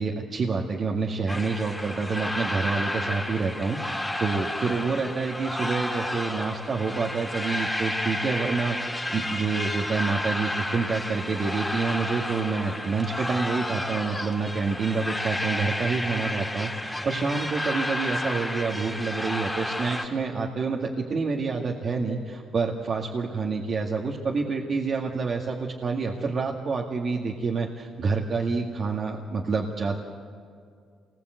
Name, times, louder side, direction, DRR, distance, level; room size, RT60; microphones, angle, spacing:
voice 1, 0.0-30.0, right 4 dB, 50° right, -1 dB, 2.1 m, -28 dB
sound 1, 1.3-20.0, left 1 dB, 5° left, 3.2 m, -31 dB
27.5 x 20.5 x 8.1 m, 2.2 s
cardioid pair, 90°, 0 cm